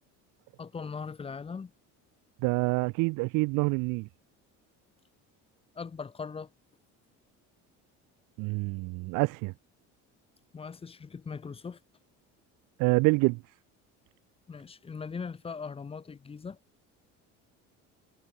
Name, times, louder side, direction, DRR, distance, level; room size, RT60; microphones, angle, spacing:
voice 1, 0.6-1.7 5.7-6.5 10.5-11.8 14.5-16.6, left 5 dB, 15° left, 3.1 m, -40 dB
voice 2, 2.4-4.1 8.4-9.5 12.8-13.4, right 26 dB, 75° right, 0.7 m, -26 dB
cardioid pair, 180°, 32 cm